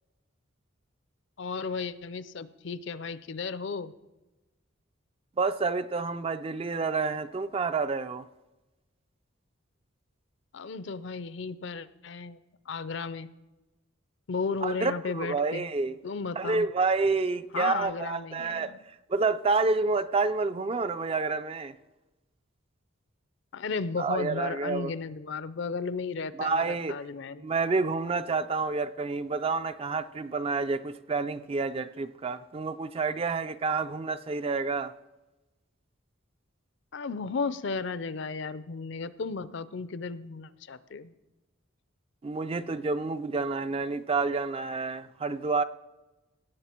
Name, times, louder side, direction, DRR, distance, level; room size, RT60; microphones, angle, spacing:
voice 1, 1.4-3.9 10.5-12.4 12.7-13.3 14.3-15.7 16.0-16.7 17.5-18.8 23.5-27.4 36.9-41.1, left 4 dB, 60° left, 0.5 m, -34 dB
voice 2, 5.4-8.3 14.6-15.9 16.4-18.7 19.1-21.8 24.0-24.9 26.4-27.0 27.4-34.9 42.2-45.6, right 4 dB, 30° right, 0.3 m, -29 dB
17.5 x 6.6 x 4.4 m
head